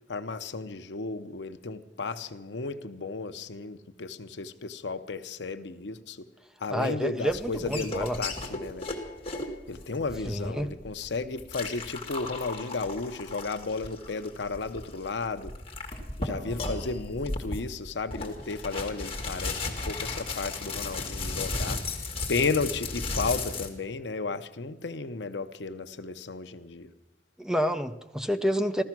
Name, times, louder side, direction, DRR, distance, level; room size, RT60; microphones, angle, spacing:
voice 1, 0.1-6.2 6.6-8.9 9.7-15.5 16.2-21.8 22.3-26.9, left 4 dB, 85° left, 10 dB, 0.8 m, -33 dB
voice 2, 6.7-8.2 10.3-10.7 27.4-28.8, equal, 5° right, 8 dB, 0.6 m, -28 dB
sound 1, 7.3-23.7, left 3 dB, 35° left, 2.0 m, -35 dB
15.0 x 13.5 x 6.0 m, 0.94 s
head